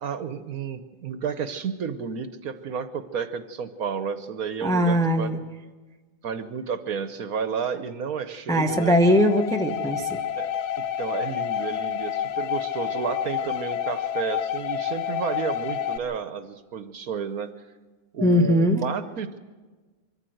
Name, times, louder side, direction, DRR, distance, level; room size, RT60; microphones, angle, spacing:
voice 1, 0.0-5.3 6.2-8.9 10.4-10.5 10.8-17.5 18.1-19.4, right 6 dB, 65° right, 11 dB, 1.3 m, -31 dB
voice 2, 4.6-5.4 8.5-10.2 18.2-18.8, equal, 5° left, 3 dB, 0.8 m, -20 dB
sound 1, 8.7-16.0, left 9 dB, 75° left, 1.4 m, -29 dB
23.5 x 14.5 x 7.8 m, 1.3 s
omnidirectional pair, 1.8 m